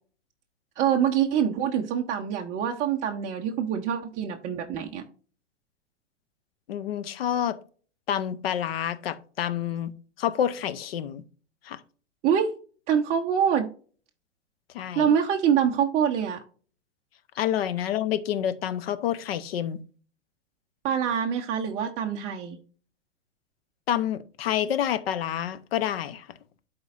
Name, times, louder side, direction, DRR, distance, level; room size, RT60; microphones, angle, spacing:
voice 1, 0.8-5.0 12.2-12.5 12.9-13.7 15.0-16.4 20.8-22.6, right 8 dB, 20° right, 0.5 m, -25 dB
voice 2, 6.7-7.6 8.1-9.9 10.2-11.2 11.6-11.8 14.7-15.1 17.4-19.8 23.9-26.3, left 10 dB, 55° left, 0.7 m, -28 dB
11.5 x 4.4 x 2.4 m
figure-of-eight pair, 110°, 36 cm